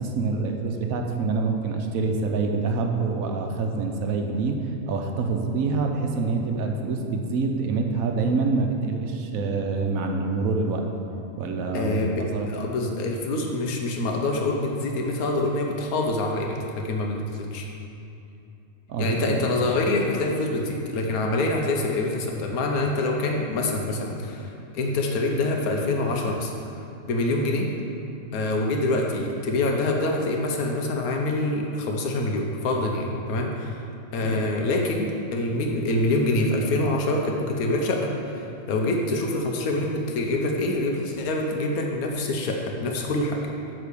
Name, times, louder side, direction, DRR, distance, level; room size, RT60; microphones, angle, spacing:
voice 1, 0.0-4.5 4.9-10.9 11.4-12.5 18.9-19.4 34.2-34.5, right 4 dB, 75° right, 3 dB, 1.1 m, -26 dB
voice 2, 11.7-17.6 19.0-26.5 27.0-27.7 28.3-33.8 34.1-43.4, left 2 dB, 90° left, 1 dB, 1.3 m, -25 dB
8.2 x 3.8 x 6.8 m, 2.7 s
omnidirectional pair, 1.5 m